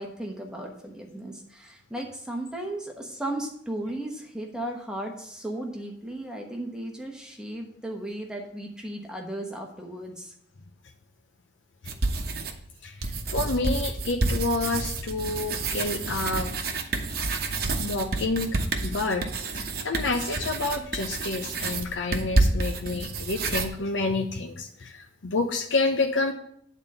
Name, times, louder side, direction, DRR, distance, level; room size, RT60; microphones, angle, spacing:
voice 1, 0.0-10.3, right 1 dB, 5° right, 0 dB, 1.0 m, -35 dB
sound 1, 11.9-12.7 13.0-23.7, right 3 dB, 50° right, 0.9 m, -29 dB
voice 2, 12.8-16.6 17.8-26.3, left 3 dB, 85° left, 4 dB, 0.7 m, -29 dB
8.9 x 4.2 x 6.4 m, 0.68 s
head